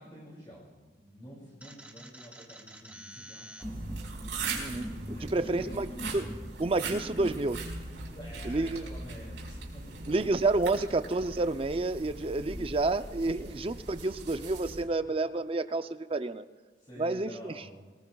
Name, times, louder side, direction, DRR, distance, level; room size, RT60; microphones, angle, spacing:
voice 1, 0.0-3.9 4.9-6.1 8.1-10.0 12.1-12.3 13.4-13.7 14.9-15.1 16.8-17.8, equal, 25° left, -4 dB, 2.8 m, -49 dB
sound 1, 1.6-7.4, equal, 5° right, 1.1 m, -43 dB
sound 2, 3.6-14.8, right 3 dB, 75° right, 4.5 m, -40 dB
voice 2, 5.3-5.9 6.1-6.3 6.6-7.6 8.5-8.9 10.1-16.4 17.0-17.5, right 2 dB, 30° right, 11 dB, 0.5 m, -29 dB
24.5 x 18.5 x 2.3 m, 1.3 s
head